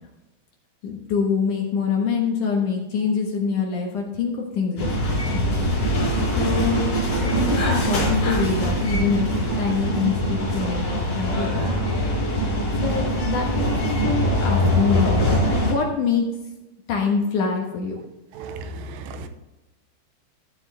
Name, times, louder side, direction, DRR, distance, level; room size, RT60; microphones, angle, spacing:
voice 1, 0.8-5.4 6.4-9.2 9.6-11.6 12.8-15.2 15.6-16.3 16.9-18.0, left 5 dB, 65° left, 0 dB, 2.1 m, -25 dB
sound 1, 4.8-15.7, equal, 35° left, 4.8 m, -22 dB
voice 2, 18.4-19.3, right 3 dB, 80° right, 8 dB, 2.9 m, -35 dB
14.0 x 7.9 x 3.3 m, 1.0 s
omnidirectional pair, 5.3 m